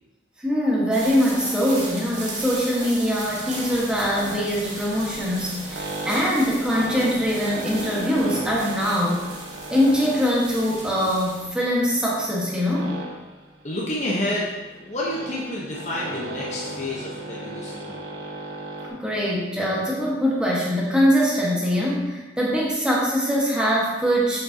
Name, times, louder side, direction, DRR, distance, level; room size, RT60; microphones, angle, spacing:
voice 1, 0.4-9.2 9.7-12.9 18.9-24.4, equal, 5° right, -5 dB, 1.5 m, -22 dB
sound 1, 0.9-11.5, right 2 dB, 40° right, 1.9 m, -37 dB
sound 2, 3.2-18.9, right 1 dB, 70° right, 1.3 m, -37 dB
voice 2, 13.6-18.0, left 1 dB, 35° left, -5 dB, 1.0 m, -29 dB
7.8 x 6.3 x 2.9 m, 1.1 s
head